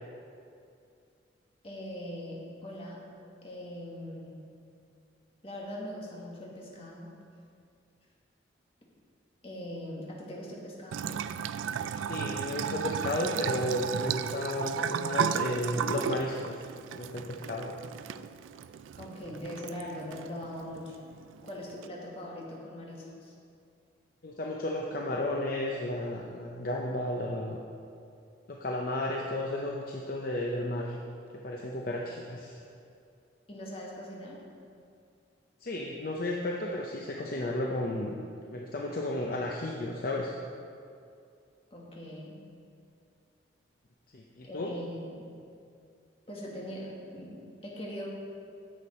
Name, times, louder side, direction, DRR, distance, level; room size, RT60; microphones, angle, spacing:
voice 1, 1.6-3.0 3.4-4.4 5.4-7.1 9.4-11.0 11.3-11.4 17.2-17.3 19.0-21.0 21.4-23.3 33.5-34.4 41.7-42.4 44.4-45.3 46.3-48.1, left 1 dB, 30° left, -3 dB, 1.6 m, -41 dB
Bathtub (filling or washing) / Trickle dribble, 10.9-21.9, right 8 dB, 90° right, 0.3 m, -35 dB
voice 2, 12.1-16.6 17.0-17.7 24.2-27.6 28.5-31.0 31.3-32.6 35.6-38.2 38.5-40.3 44.1-44.7, left 1 dB, 50° left, -1 dB, 0.6 m, -33 dB
10.0 x 7.3 x 4.3 m, 2.4 s
head